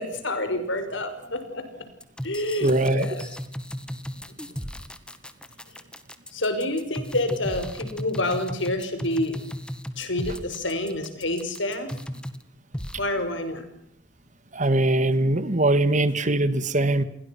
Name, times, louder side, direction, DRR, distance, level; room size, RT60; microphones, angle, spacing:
voice 1, 0.0-1.6 2.2-3.2 4.4-4.5 6.3-9.4 10.0-11.9 13.0-13.6, left 1 dB, 75° left, 8 dB, 5.6 m, -28 dB
sound 1, 2.0-12.4 12.7-13.0, equal, 5° left, 1.9 m, -35 dB
voice 2, 2.6-3.1 14.5-17.0, right 2 dB, 40° right, 13 dB, 1.8 m, -21 dB
30.0 x 22.5 x 6.1 m, 0.73 s
head